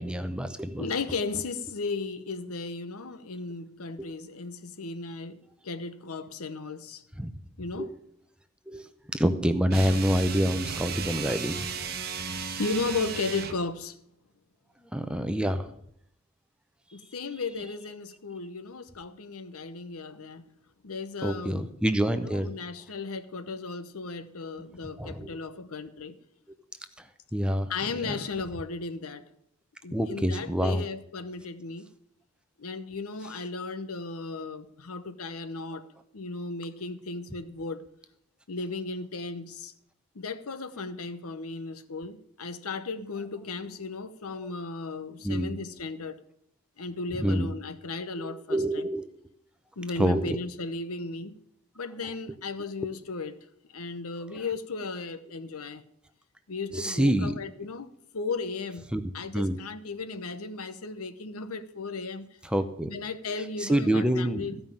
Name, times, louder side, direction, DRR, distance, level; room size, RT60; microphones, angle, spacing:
voice 1, 0.0-0.9 4.0-4.1 7.2-7.3 7.7-7.9 8.7-8.9 9.1-11.7 14.9-15.7 21.2-22.5 25.0-25.3 27.3-27.7 28.0-28.1 29.9-30.8 45.2-45.5 47.1-47.5 48.2-49.1 50.0-50.4 56.7-57.3 58.9-59.0 59.3-59.6 62.4-62.9 63.6-64.5, equal, 5° right, 0.6 m, -26 dB
voice 2, 0.8-7.0 7.6-7.9 12.6-14.0 16.9-20.5 20.8-21.7 22.1-26.2 27.7-29.3 29.8-31.9 32.6-35.9 36.1-37.9 38.5-39.7 40.1-46.2 46.8-48.9 49.8-51.4 51.8-55.8 56.5-58.8 59.1-62.3 62.8-64.6, left 3 dB, 80° left, 0.9 m, -35 dB
sound 1, 9.7-13.7, right 5 dB, 45° right, 1.0 m, -35 dB
15.0 x 5.6 x 8.9 m
head